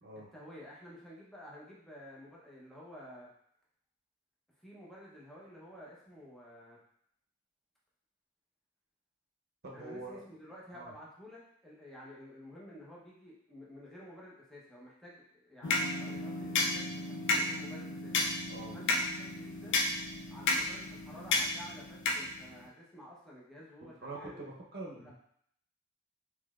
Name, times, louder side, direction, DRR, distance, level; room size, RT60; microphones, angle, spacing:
voice 1, 0.3-3.3 4.6-6.8 9.7-18.3 18.7-19.8 20.3-24.4 25.0-25.1, equal, ahead, -6 dB, 0.8 m, -51 dB
voice 2, 9.6-10.2 10.7-10.9 18.5-18.8 23.8-25.1, right 2 dB, 50° right, -2 dB, 0.8 m, -45 dB
sound 1, 15.6-22.7, left 2 dB, 60° left, 0.5 m, -33 dB
3.9 x 3.1 x 2.4 m, 0.67 s
head